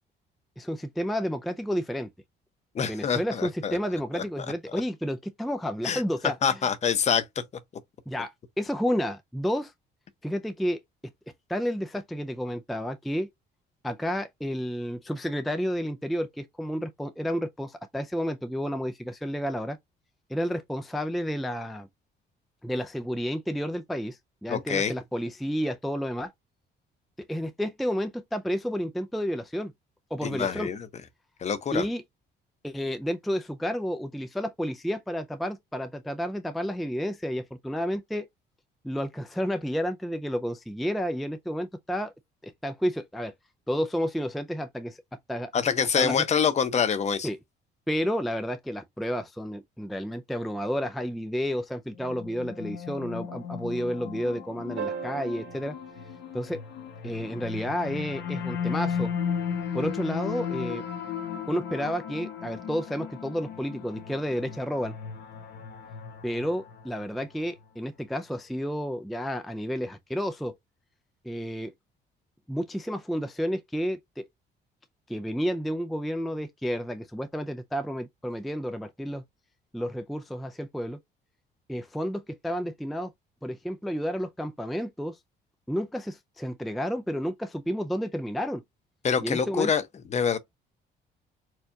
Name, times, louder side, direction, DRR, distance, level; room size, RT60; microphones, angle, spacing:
voice 1, 0.6-2.1 2.9-6.6 8.1-8.3 8.6-9.7 10.2-10.8 11.5-13.3 13.8-19.8 20.3-21.9 22.6-26.3 27.3-29.7 30.1-30.7 31.7-32.0 32.6-38.3 38.8-42.1 42.4-43.3 43.7-45.0 45.3-45.5 46.0-46.2 47.2-47.4 47.9-55.8 56.3-56.6 57.0-59.1 59.7-60.8 61.5-64.9 66.2-70.5 71.2-71.7 72.5-74.2 75.1-79.2 79.7-81.0 81.7-83.1 83.4-85.2 85.7-88.6 89.2-89.7, equal, ahead, 0.3 m, -31 dB
voice 2, 2.7-3.8 4.1-4.2 5.8-6.0 6.4-7.2 24.5-24.9 30.2-30.8 31.4-31.8 45.5-47.3 89.0-89.8 90.1-90.4, left 7 dB, 35° left, 0.6 m, -25 dB
sound 1, 51.9-67.3, left 7 dB, 65° left, 0.9 m, -35 dB
sound 2, 54.8-57.3 59.5-59.6, right 7 dB, 75° right, 2.1 m, -39 dB
4.4 x 2.3 x 2.7 m
cardioid pair, 115°, 19 cm